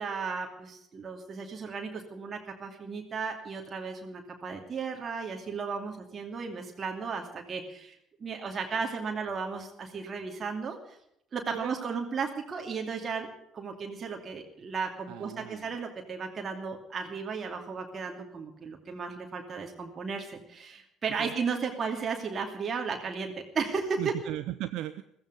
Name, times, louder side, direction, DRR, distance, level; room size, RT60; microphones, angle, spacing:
voice 1, 0.0-11.0 11.3-13.3 13.5-24.1, right 5 dB, 35° right, 2 dB, 2.6 m, -35 dB
voice 2, 11.5-12.0 15.1-15.7 21.2-21.3 24.0-25.0, right 14 dB, 55° right, 12 dB, 0.7 m, -37 dB
15.5 x 15.5 x 5.2 m, 0.76 s
figure-of-eight pair, 55°, 0 cm